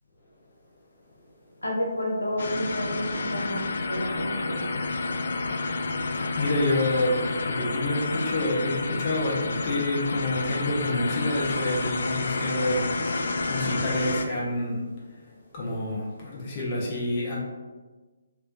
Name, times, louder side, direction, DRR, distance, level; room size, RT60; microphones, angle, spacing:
voice 1, 1.6-4.9, equal, 85° left, -2 dB, 0.7 m, -31 dB
sound 1, 2.4-14.2, left 3 dB, 55° left, 0.3 m, -29 dB
voice 2, 6.2-12.8 13.5-14.8 15.5-17.4, left 1 dB, 35° left, -4 dB, 0.9 m, -28 dB
3.2 x 3.1 x 2.6 m, 1.3 s
figure-of-eight pair, 140°, 0 cm